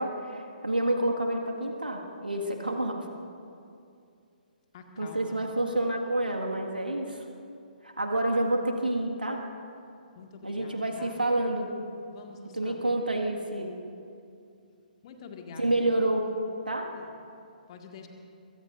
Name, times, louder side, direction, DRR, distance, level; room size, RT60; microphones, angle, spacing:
voice 1, 0.0-3.0 5.0-7.3 7.8-9.4 10.4-11.7 12.5-13.7 15.6-16.3 16.7-16.9, right 1 dB, 80° right, 1 dB, 1.8 m, -28 dB
voice 2, 4.7-5.4 10.2-11.2 12.1-12.9 15.0-15.6 16.9-17.1 17.7-18.1, left 5 dB, 40° left, 3 dB, 1.9 m, -46 dB
23.0 x 23.0 x 2.6 m, 2.5 s
figure-of-eight pair, 130°, 5 cm